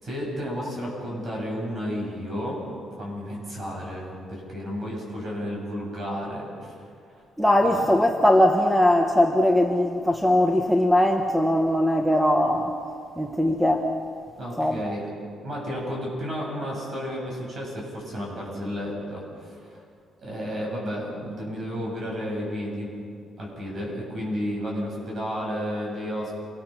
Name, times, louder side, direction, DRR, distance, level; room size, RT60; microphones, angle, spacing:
voice 1, 0.0-6.5 7.6-7.9 14.4-15.1 15.4-19.8 20.2-22.9 23.4-26.3, equal, 40° right, -2 dB, 7.9 m, -32 dB
voice 2, 7.4-12.7 13.2-13.9 14.6-14.8, left 1 dB, ahead, 1 dB, 1.1 m, -20 dB
27.5 x 20.5 x 6.1 m, 2.3 s
cardioid pair, 145°, 0 cm